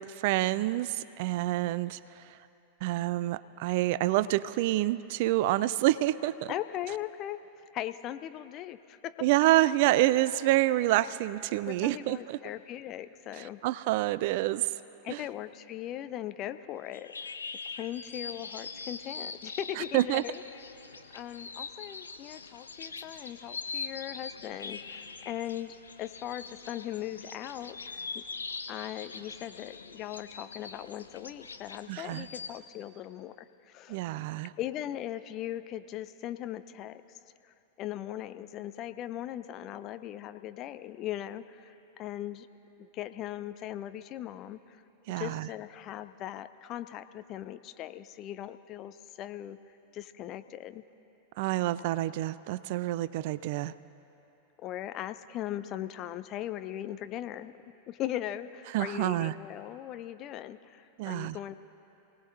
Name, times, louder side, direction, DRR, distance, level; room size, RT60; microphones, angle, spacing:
voice 1, 0.0-2.2 2.8-6.5 9.2-12.4 13.4-14.7 15.1-15.2 19.9-20.2 31.9-32.3 33.9-34.5 45.1-45.5 51.4-53.7 58.7-59.3 61.0-61.4, right 16 dB, 50° right, 17 dB, 0.3 m, -27 dB
voice 2, 6.5-7.4 7.7-9.2 11.7-13.6 15.0-17.3 17.7-20.4 21.1-28.2 28.7-34.0 34.6-37.0 37.4-42.5 42.8-44.8 45.2-49.6 49.9-50.8 54.6-57.5 57.9-61.6, left 12 dB, 35° left, 12 dB, 0.5 m, -39 dB
sound 1, 16.9-32.6, left 4 dB, 75° left, 0.6 m, -43 dB
27.5 x 18.5 x 2.7 m, 3.0 s
figure-of-eight pair, 90°, 0 cm